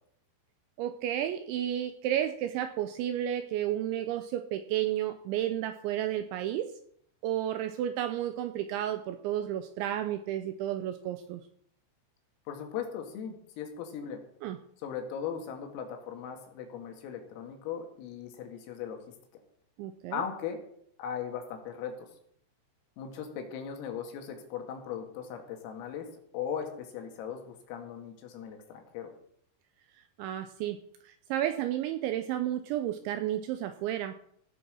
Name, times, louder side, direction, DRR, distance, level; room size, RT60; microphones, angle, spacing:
voice 1, 0.8-6.7 7.2-11.4 14.4-14.6 19.8-20.2 30.2-30.8 31.3-34.1, right 11 dB, 80° right, 8 dB, 2.7 m, -32 dB
voice 2, 12.5-14.2 14.8-19.0 20.1-20.6 21.0-22.1 23.0-26.1 26.3-29.1, left 8 dB, 80° left, 4 dB, 4.6 m, -38 dB
16.5 x 7.9 x 6.3 m, 0.67 s
omnidirectional pair, 6.0 m